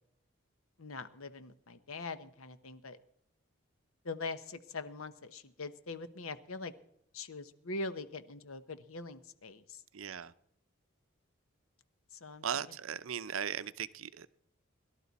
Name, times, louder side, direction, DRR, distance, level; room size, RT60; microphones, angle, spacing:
voice 1, 0.8-3.0 4.0-6.7 7.1-9.6 12.2-12.4, left 3 dB, 85° left, 1.1 m, -42 dB
voice 2, 9.9-10.3 12.4-14.3, right 8 dB, 80° right, 0.6 m, -38 dB
22.5 x 12.0 x 4.2 m
head